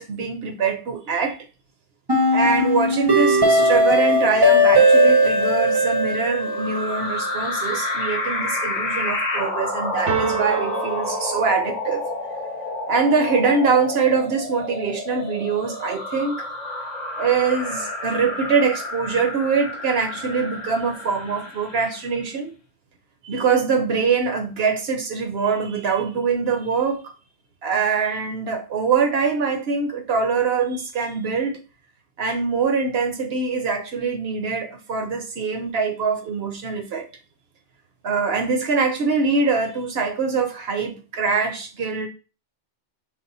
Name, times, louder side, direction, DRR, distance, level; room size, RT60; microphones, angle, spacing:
voice 1, 0.0-1.4 2.3-12.0 12.9-16.5 17.2-22.5 23.2-27.1 27.6-31.6 32.2-37.1 38.0-42.1, right 5 dB, 55° right, 0.9 m, -23 dB
sound 1, 2.1-7.1, equal, 25° right, 0.7 m, -18 dB
sound 2, 6.4-22.1, left 2 dB, 40° left, 0.7 m, -30 dB
sound 3, 10.1-12.0, right 8 dB, 80° right, 1.2 m, -28 dB
5.3 x 2.1 x 4.0 m
omnidirectional pair, 1.3 m